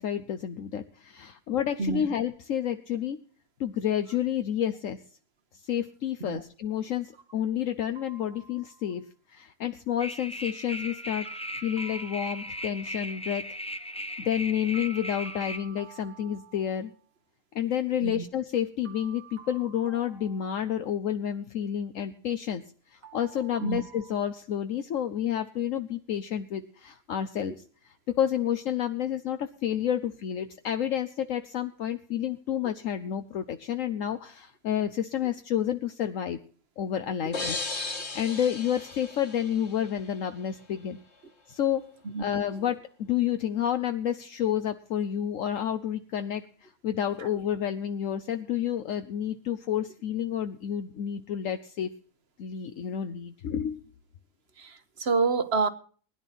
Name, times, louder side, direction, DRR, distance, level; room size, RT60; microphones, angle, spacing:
voice 1, 0.0-3.2 3.6-5.0 5.6-11.3 11.6-13.5 14.2-16.9 17.5-22.6 22.9-27.5 28.1-36.4 36.8-37.6 38.1-41.0 41.5-41.9 42.2-51.9 52.4-53.8, left 10 dB, 70° left, 1.2 m, -30 dB
sound 1, 8.0-9.1 10.7-13.0 14.7-17.1 18.9-21.2 23.0-24.1, right 8 dB, 80° right, 2.0 m, -51 dB
sound 2, 10.0-15.6, equal, 5° left, 0.7 m, -37 dB
sound 3, 37.3-40.1, left 3 dB, 50° left, 2.2 m, -35 dB
voice 2, 54.6-55.7, right 4 dB, 50° right, 1.4 m, -28 dB
20.0 x 11.0 x 4.2 m
omnidirectional pair, 1.5 m